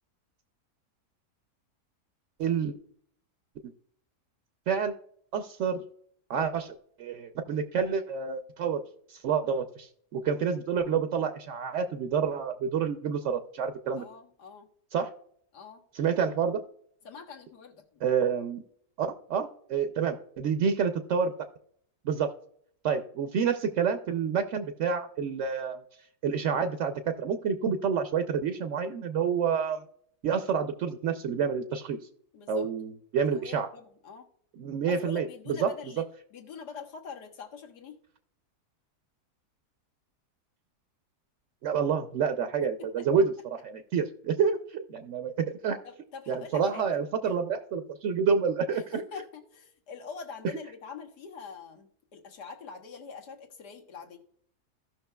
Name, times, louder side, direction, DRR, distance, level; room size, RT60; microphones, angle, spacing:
voice 1, 2.4-2.7 3.6-3.7 4.7-4.9 5.3-5.8 6.3-8.8 9.1-14.0 14.9-15.1 15.9-16.6 18.0-18.6 19.0-21.3 22.0-22.3 22.8-25.8 26.2-29.8 30.2-32.0 32.5-33.7 34.6-35.7 41.6-43.3 43.6-45.8 46.3-49.0, right 6 dB, 65° right, 7 dB, 0.8 m, -28 dB
voice 2, 14.0-14.7 15.5-15.8 17.0-18.0 32.3-32.7 33.2-34.3 34.9-36.0 36.3-38.0 43.0-43.1 45.8-46.8 47.2-47.4 48.7-54.2, left 5 dB, 90° left, 2 dB, 1.9 m, -44 dB
16.0 x 5.9 x 2.3 m, 0.65 s
omnidirectional pair, 1.7 m